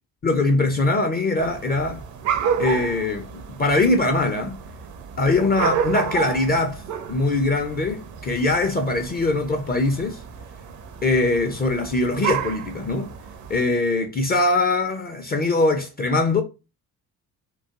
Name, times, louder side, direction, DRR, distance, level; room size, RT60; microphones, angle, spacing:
voice 1, 0.2-2.0 2.6-4.6 5.2-6.8 7.1-10.2 11.0-13.1 13.5-16.4, left 2 dB, 20° left, 0.4 m, -22 dB
sound 1, 1.4-13.6, right 8 dB, 40° right, 0.5 m, -31 dB
2.4 x 2.2 x 2.3 m
figure-of-eight pair, 45°, 47 cm